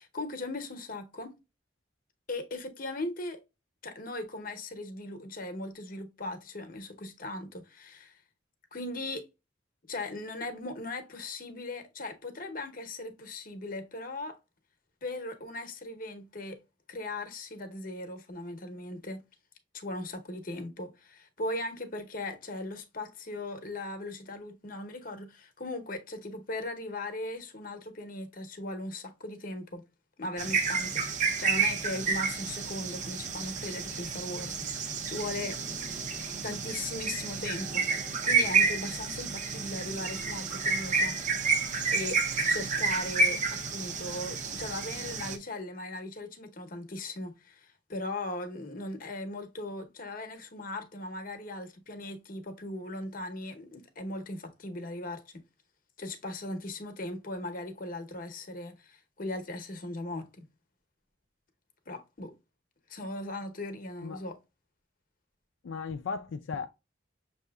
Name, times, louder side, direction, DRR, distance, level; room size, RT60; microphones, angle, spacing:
voice 1, 0.0-1.3 2.3-3.4 3.8-8.2 8.7-9.3 9.9-14.4 15.0-16.6 16.9-19.2 19.7-29.8 30.2-35.6 36.4-37.9 38.2-41.2 41.6-42.2 42.5-55.3 56.0-60.5 61.9-62.3 62.9-64.4, left 2 dB, 50° left, 0.8 m, -38 dB
sound 1, 30.4-45.4, right 4 dB, 40° right, 0.6 m, -30 dB
voice 2, 65.6-66.7, left 5 dB, 80° left, 0.4 m, -36 dB
6.4 x 2.7 x 2.2 m
head